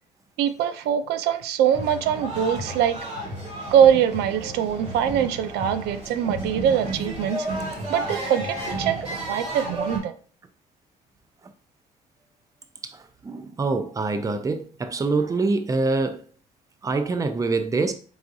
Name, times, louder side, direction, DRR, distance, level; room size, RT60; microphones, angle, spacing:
voice 1, 0.4-3.0 3.7-7.5 7.9-8.9 9.3-10.1, right 9 dB, 80° right, 0.4 m, -22 dB
sound 1, 1.7-10.0, right 1 dB, 40° right, 2.0 m, -32 dB
voice 2, 12.8-16.2 16.8-17.9, right 3 dB, 20° right, 0.5 m, -25 dB
4.8 x 3.6 x 2.6 m
cardioid pair, 110°, 17 cm